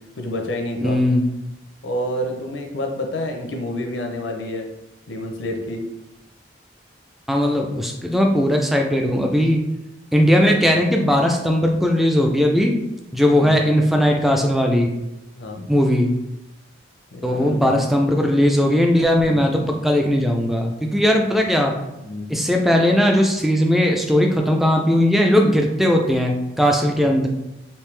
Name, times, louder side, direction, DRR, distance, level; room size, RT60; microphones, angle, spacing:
voice 1, 0.2-1.0 1.8-4.7 5.1-5.8 13.4-13.6 15.3-15.7 17.1-17.8 22.0-22.3 26.9-27.1, left 1 dB, 80° left, 3 dB, 0.6 m, -29 dB
voice 2, 0.8-1.3 7.3-9.6 10.1-12.8 13.1-14.9 15.7-16.1 17.2-21.7 22.3-27.3, equal, ahead, 2 dB, 0.3 m, -18 dB
3.4 x 2.6 x 3.2 m, 0.92 s
head